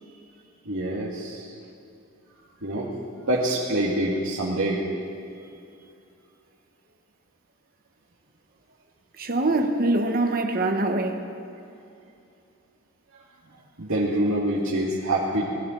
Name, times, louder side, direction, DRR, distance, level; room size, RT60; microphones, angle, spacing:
voice 1, 0.7-1.5 2.6-2.9 3.3-4.8 13.8-15.4, right 1 dB, 75° right, 2.0 m, -25 dB
voice 2, 9.2-11.2, right 2 dB, 40° right, 1.0 m, -23 dB
20.5 x 13.0 x 3.9 m
head